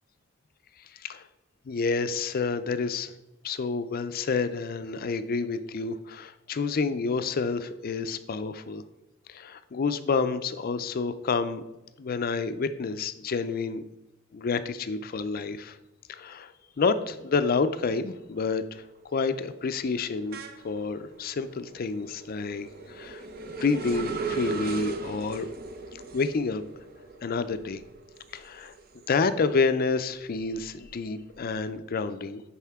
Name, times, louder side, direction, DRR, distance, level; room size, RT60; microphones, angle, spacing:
voice 1, 0.9-1.3 1.7-3.1 3.4-8.8 9.3-11.6 12.0-13.8 14.3-15.8 16.1-20.4 20.6-23.2 23.6-25.5 26.1-26.8 27.2-27.8 28.3-32.4, left 4 dB, 45° left, 12 dB, 0.4 m, -29 dB
sound 1, 17.8-17.9 18.2-29.5 29.9-31.6, right 3 dB, 50° right, 0.7 m, -39 dB
10.0 x 4.3 x 3.5 m, 0.99 s
head